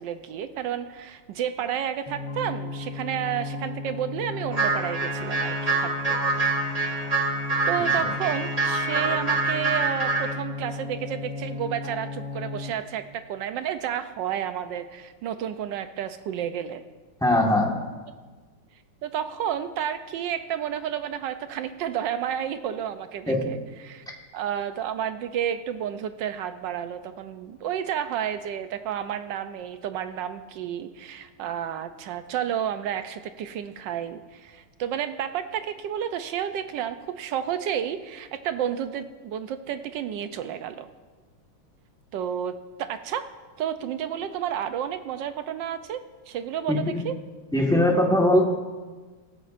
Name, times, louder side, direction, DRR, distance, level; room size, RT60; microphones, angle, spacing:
voice 1, 0.0-6.2 7.7-16.8 19.0-23.6 23.8-24.0 24.3-40.9 42.1-43.3 43.6-47.2, right 9 dB, 75° right, 10 dB, 1.1 m, -31 dB
sound 1, 2.1-12.7, left 3 dB, 65° left, 2.7 m, -35 dB
sound 2, 4.5-10.3, right 3 dB, 35° right, 0.6 m, -26 dB
voice 2, 17.2-17.8 23.3-23.4 46.7-47.0 47.5-48.4, left 1 dB, ahead, -1 dB, 1.0 m, -21 dB
17.5 x 14.0 x 2.5 m, 1.3 s
omnidirectional pair, 2.4 m